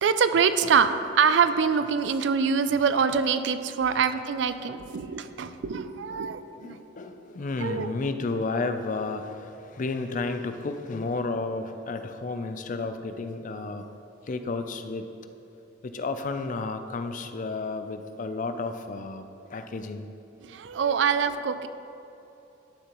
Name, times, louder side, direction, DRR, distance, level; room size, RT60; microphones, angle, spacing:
voice 1, 0.0-6.8 7.6-7.9 20.4-21.7, right 6 dB, 70° right, 11 dB, 0.4 m, -24 dB
voice 2, 6.6-13.9 14.3-15.1 15.8-20.1, left 3 dB, 45° left, 8 dB, 0.4 m, -32 dB
11.5 x 6.6 x 3.0 m, 2.9 s
head